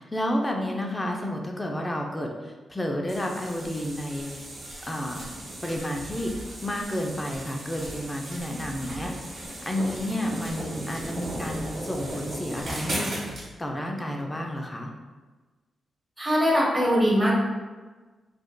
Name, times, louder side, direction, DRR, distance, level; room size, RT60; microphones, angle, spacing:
voice 1, 0.0-4.5 4.9-5.3 5.6-6.3 6.6-13.1 13.6-14.9, left 1 dB, 20° left, 1 dB, 0.6 m, -31 dB
sound 1, 3.1-13.5, right 1 dB, 55° right, 1.4 m, -37 dB
voice 2, 16.2-17.3, equal, 20° right, -5 dB, 1.2 m, -21 dB
4.9 x 2.4 x 2.2 m, 1.3 s
cardioid pair, 75°, 0 cm